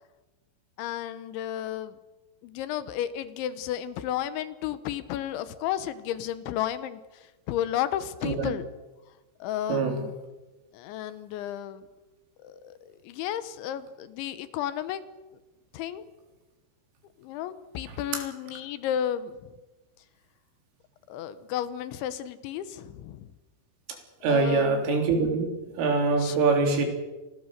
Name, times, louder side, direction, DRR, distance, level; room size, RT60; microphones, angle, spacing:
voice 1, 0.8-2.0 2.4-8.7 9.4-10.1 10.7-11.9 12.4-15.0 15.7-16.0 17.2-19.5 21.1-23.3 24.2-24.8 26.2-26.4, left 11 dB, 75° left, 13 dB, 3.3 m, -33 dB
voice 2, 24.2-25.5 25.8-26.9, right 4 dB, 90° right, 4 dB, 6.0 m, -23 dB
26.5 x 20.5 x 6.7 m, 1.1 s
omnidirectional pair, 5.6 m